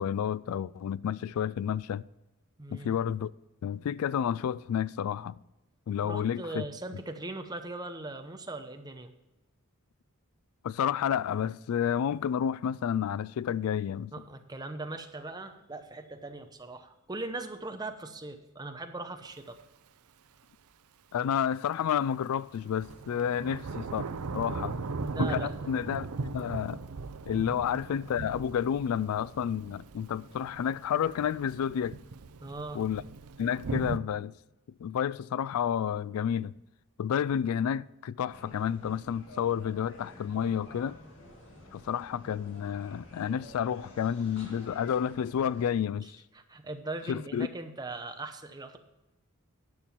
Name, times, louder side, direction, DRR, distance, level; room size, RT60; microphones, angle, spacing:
voice 1, 0.0-2.0 2.7-3.3 3.6-5.4 5.9-6.6 10.6-14.1 21.1-24.1 24.3-24.7 25.2-26.1 26.3-26.8 27.3-32.0 32.7-33.0 33.4-34.3 34.8-36.5 37.0-41.0 41.7-46.2 47.1-47.5, left 8 dB, 75° left, 0.3 m, -30 dB
voice 2, 2.6-3.0 6.0-9.1 14.1-19.6 24.4-24.7 25.0-25.5 27.5-27.6 32.4-32.8 46.0-48.8, right 2 dB, 20° right, 0.8 m, -40 dB
Thunder / Rain, 19.2-19.3 22.3-34.0, right 4 dB, 80° right, 0.6 m, -38 dB
sound 1, 38.3-45.7, equal, 55° left, 2.2 m, -51 dB
11.0 x 7.5 x 4.5 m
head